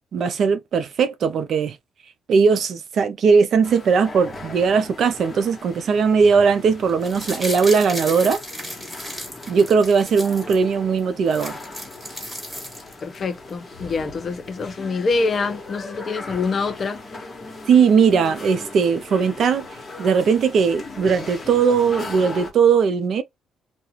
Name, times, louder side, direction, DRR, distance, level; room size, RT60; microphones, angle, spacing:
voice 1, 0.1-1.8 2.3-8.4 9.5-11.6 17.7-19.7 20.0-23.2, right 5 dB, 60° right, 0.5 m, -19 dB
sound 1, 3.6-22.5, left 3 dB, 30° left, 1.1 m, -38 dB
sound 2, 6.9-10.6 11.0-11.1 11.3-13.2 13.5-13.6, equal, 10° right, 1.5 m, -34 dB
voice 2, 13.0-17.0, left 4 dB, 45° left, 0.5 m, -25 dB
2.4 x 2.2 x 2.9 m
cardioid pair, 90°, 0 cm